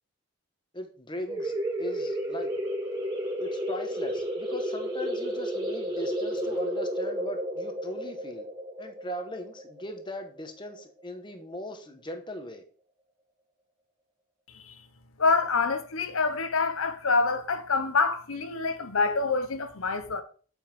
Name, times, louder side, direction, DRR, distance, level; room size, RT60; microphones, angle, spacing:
voice 1, 0.7-2.5 3.4-8.5 8.8-12.6, left 1 dB, 20° left, 1.1 m, -39 dB
sound 1, 1.3-10.6, equal, 20° right, 1.7 m, -32 dB
voice 2, 15.2-20.2, left 4 dB, 80° left, 0.9 m, -26 dB
7.7 x 5.4 x 5.3 m
head